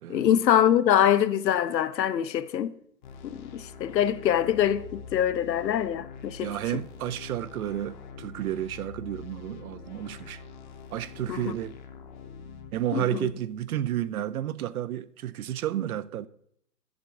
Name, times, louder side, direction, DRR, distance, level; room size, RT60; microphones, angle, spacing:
voice 1, 0.1-2.7 3.3-6.5 11.3-11.5 12.9-13.3, left 10 dB, 85° left, 0.8 m, -24 dB
sound 1, 3.0-12.7, left 5 dB, 30° left, 0.7 m, -45 dB
voice 2, 6.4-10.4 10.9-11.7 12.7-16.3, right 12 dB, 60° right, 0.6 m, -31 dB
10.5 x 7.4 x 3.7 m
hypercardioid pair, 155°, 49 cm